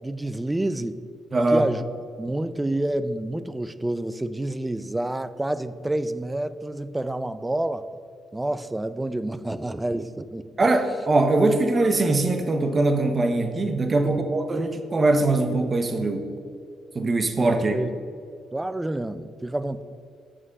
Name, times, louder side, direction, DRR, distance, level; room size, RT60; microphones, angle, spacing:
voice 1, 0.0-1.0 1.5-1.8 2.2-7.9 8.3-10.5 14.0-14.3 17.5-17.9 18.5-19.8, right 1 dB, 10° right, 13 dB, 0.4 m, -28 dB
voice 2, 1.3-1.7 10.6-16.3 16.9-17.8, right 2 dB, 35° right, 7 dB, 0.8 m, -22 dB
7.4 x 6.1 x 6.6 m, 2.3 s
cardioid pair, 90°, 0 cm